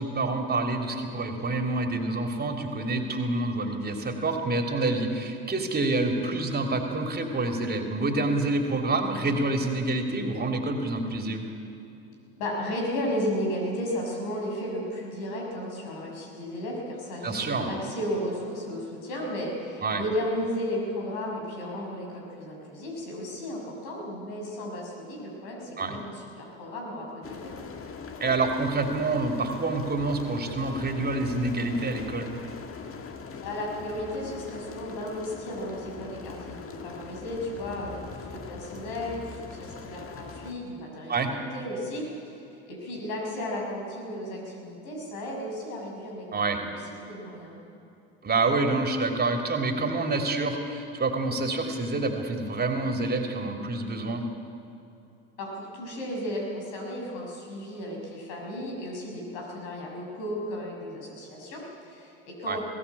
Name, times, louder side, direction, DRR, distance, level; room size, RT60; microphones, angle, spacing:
voice 1, 0.0-11.4 17.2-17.7 19.8-20.0 25.8-26.0 28.2-32.3 41.1-41.3 46.3-46.6 48.2-54.2 62.5-62.6, right 2 dB, 30° right, 4 dB, 3.1 m, -27 dB
voice 2, 12.4-27.7 33.4-42.4 42.7-46.8 47.1-47.6 55.4-62.6, equal, 75° left, -1 dB, 6.6 m, -34 dB
sound 1, 27.2-40.5, left 5 dB, 45° left, 1.9 m, -41 dB
21.0 x 16.0 x 8.5 m, 2.7 s
hypercardioid pair, 70°, 31 cm